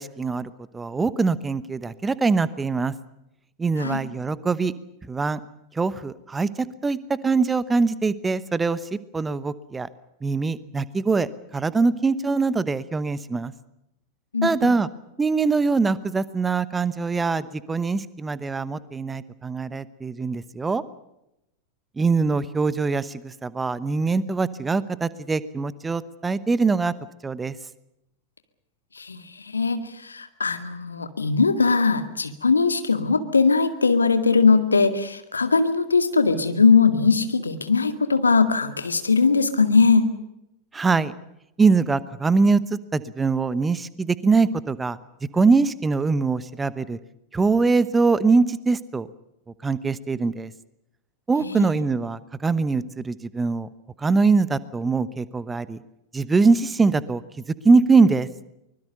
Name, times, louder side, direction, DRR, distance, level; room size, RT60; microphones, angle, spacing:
voice 1, 0.0-2.9 3.6-4.7 5.1-5.4 5.8-9.9 10.2-11.3 11.5-13.5 14.4-14.9 15.2-20.8 22.0-26.9 27.2-27.5 40.7-41.1 41.6-45.0 45.3-47.0 47.3-49.1 49.6-50.5 51.3-53.7 54.0-55.8 56.1-57.2 57.6-58.3, right 4 dB, 15° right, 17 dB, 1.0 m, -22 dB
voice 2, 14.3-14.7 29.0-40.0 51.4-51.7, left 4 dB, 75° left, 9 dB, 2.0 m, -20 dB
24.5 x 21.5 x 6.7 m, 0.85 s
figure-of-eight pair, 90°, 0 cm